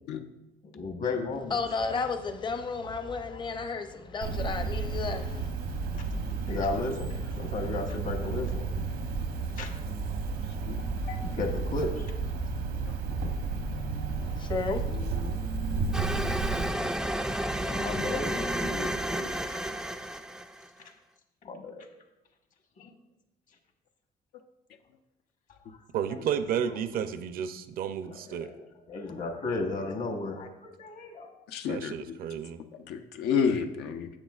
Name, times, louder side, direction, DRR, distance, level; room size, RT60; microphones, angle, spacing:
voice 1, 0.7-1.5 6.5-7.1 7.4-8.7 9.6-9.7 10.7-12.1 17.7-19.6 21.4-21.8 22.8-22.9 26.1-26.2 26.8-26.9 28.0-28.5 28.9-31.3, left 3 dB, 50° left, 1.1 m, -34 dB
voice 2, 1.5-5.5 14.2-15.0, left 4 dB, 25° left, 0.6 m, -33 dB
Cricket, 4.2-16.7, right 4 dB, 80° right, 0.9 m, -32 dB
voice 3, 13.9-14.3 15.2-15.3 31.5-32.0 32.9-34.1, left 6 dB, 80° left, 0.6 m, -30 dB
sound 1, 15.9-20.7, right 1 dB, 5° right, 0.3 m, -31 dB
voice 4, 25.9-28.5 31.7-32.6, right 8 dB, 60° right, 0.5 m, -32 dB
9.9 x 7.1 x 2.4 m
cardioid pair, 110°, 17 cm